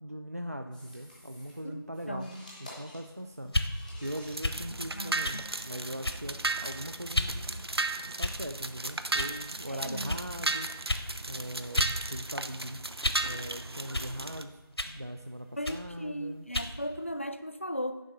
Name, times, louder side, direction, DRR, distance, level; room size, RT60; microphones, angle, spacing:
voice 1, 0.0-2.3 2.6-3.5 4.0-7.7 8.0-10.7 11.3-12.9 13.2-14.6 14.9-16.5, equal, 40° right, 6 dB, 0.3 m, -40 dB
sound 1, 0.7-17.2, left 1 dB, 5° left, 0.8 m, -57 dB
voice 2, 1.6-2.4 4.9-5.4 9.7-10.2 15.6-18.0, equal, 30° left, 10 dB, 0.4 m, -37 dB
sound 2, 3.5-3.7 4.4-4.6 5.2-5.4 6.0-6.3 7.1-7.4 8.2-8.6 9.2-9.4 10.1-10.2 10.9-11.1 11.8-12.0 12.3-13.3 13.9-14.1 14.8-15.0 15.6-15.8 16.5-16.7, left 1 dB, 90° left, 1.0 m, -31 dB
sound 3, 4.0-14.4, right 2 dB, 80° right, 0.7 m, -35 dB
9.9 x 3.7 x 6.5 m, 1.1 s
figure-of-eight pair, 170°, 13 cm